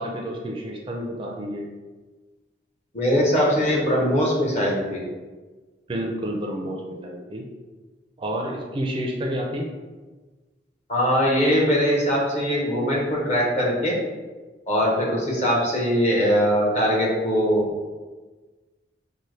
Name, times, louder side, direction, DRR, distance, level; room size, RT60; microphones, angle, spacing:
voice 1, 0.0-1.7 5.9-7.4 8.2-9.7, equal, 30° right, 0 dB, 0.4 m, -29 dB
voice 2, 2.9-5.0 10.9-14.0 14.7-17.9, equal, 40° left, -4 dB, 1.1 m, -21 dB
5.4 x 2.1 x 3.2 m, 1.3 s
head